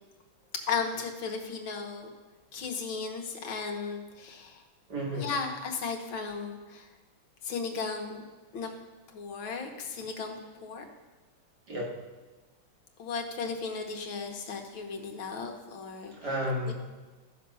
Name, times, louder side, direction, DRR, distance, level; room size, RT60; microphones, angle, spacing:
voice 1, 0.5-2.1 2.5-4.6 5.2-6.9 7.4-8.2 8.5-8.7 9.1-10.8 13.0-16.1 16.7-16.8, left 5 dB, 75° left, 3 dB, 2.0 m, -35 dB
voice 2, 4.9-5.3 11.7-12.0 16.1-16.7, equal, 55° right, -3 dB, 2.7 m, -32 dB
14.0 x 6.7 x 5.5 m, 1.3 s
omnidirectional pair, 2.2 m